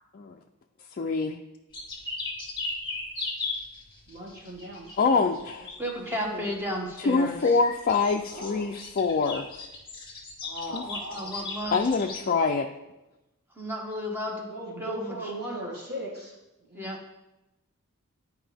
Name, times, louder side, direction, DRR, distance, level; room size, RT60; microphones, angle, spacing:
voice 1, 1.0-1.4 5.0-5.7 7.0-9.5 10.7-10.8 11.7-12.6, left 4 dB, 40° left, 2 dB, 0.4 m, -25 dB
sound 1, 1.7-6.3 7.3-12.2, left 3 dB, 20° left, 1.8 m, -37 dB
voice 2, 4.1-5.3 5.9-6.4 8.2-8.8 10.4-11.4 14.5-16.4 16.6-16.9, right 1 dB, 45° right, -4 dB, 1.8 m, -38 dB
voice 3, 5.8-7.6 10.7-12.1 13.6-14.5 14.8-15.2 16.7-17.0, equal, 10° right, 0 dB, 1.2 m, -33 dB
11.0 x 4.8 x 3.4 m, 0.95 s
head